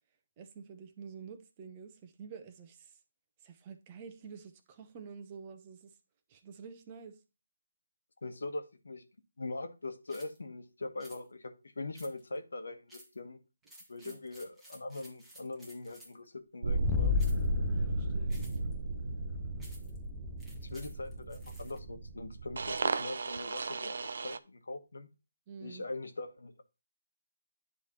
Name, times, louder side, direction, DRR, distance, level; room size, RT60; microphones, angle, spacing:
voice 1, 0.4-2.9 3.4-5.9 6.3-7.2 14.0-14.2 17.7-18.4 25.5-25.9, right 6 dB, 25° right, 0.9 m, -48 dB
voice 2, 8.2-9.0 9.4-13.4 13.9-17.1 20.7-24.0 24.2-25.1 25.6-26.6, left 2 dB, 75° left, 1.3 m, -42 dB
sound 1, 10.1-10.4 11.0-11.2 11.9-12.4 12.9-13.2 13.6-16.3 17.2-17.5 18.3-18.7 19.6-20.0 20.4-21.8, right 1 dB, 5° right, 1.4 m, -55 dB
sound 2, 16.6-24.4, right 3 dB, 65° right, 0.5 m, -35 dB
sound 3, 16.7-22.3, left 12 dB, 15° left, 0.3 m, -36 dB
10.0 x 3.3 x 4.3 m
figure-of-eight pair, 155°, 0 cm